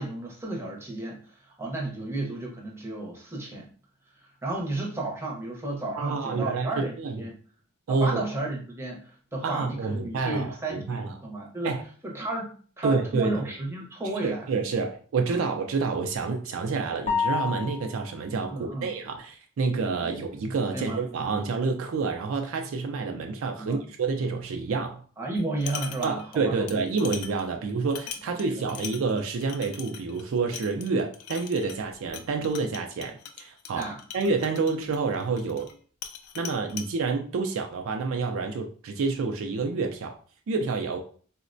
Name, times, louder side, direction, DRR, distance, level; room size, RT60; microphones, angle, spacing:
voice 1, 0.0-3.7 4.2-7.3 7.9-11.8 12.0-14.5 15.3-15.4 18.5-18.9 20.0-20.1 20.7-21.0 23.6-23.8 25.2-26.7 28.3-28.8 33.7-34.0, right 2 dB, 10° right, 0.7 m, -33 dB
voice 2, 6.0-7.2 7.9-8.2 9.4-11.1 11.6-11.8 12.8-13.4 14.2-25.0 26.0-35.7 36.4-40.2 40.5-41.0, right 4 dB, 60° right, 0.4 m, -28 dB
sound 1, 17.1-18.1, left 6 dB, 30° left, 0.6 m, -28 dB
sound 2, 25.4-26.4 26.7-35.7 36.0-36.9, left 8 dB, 80° left, 0.4 m, -41 dB
3.9 x 2.1 x 2.5 m
head